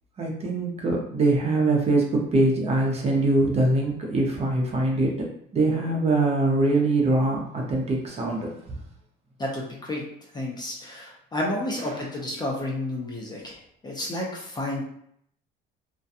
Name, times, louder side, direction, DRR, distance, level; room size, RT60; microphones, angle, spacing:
voice 1, 0.2-5.3 5.5-8.8 11.7-12.1, right 2 dB, 30° right, -1 dB, 0.6 m, -23 dB
voice 2, 9.4-10.0 10.3-14.8, left 1 dB, 20° left, -2 dB, 0.5 m, -31 dB
2.4 x 2.2 x 2.6 m, 0.69 s
cardioid pair, 135°, 20 cm